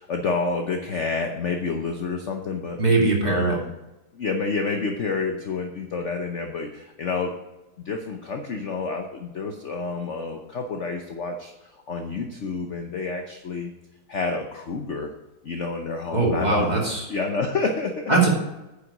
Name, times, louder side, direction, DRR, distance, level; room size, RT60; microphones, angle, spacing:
voice 1, 0.0-2.8 3.2-3.7 4.1-7.3 7.8-13.7 14.1-15.1 15.4-18.3, left 4 dB, 50° left, 4 dB, 1.0 m, -29 dB
voice 2, 2.8-3.5 16.1-17.0 18.1-18.3, right 3 dB, 20° right, -3 dB, 2.4 m, -20 dB
9.8 x 7.0 x 4.9 m, 0.97 s
omnidirectional pair, 2.0 m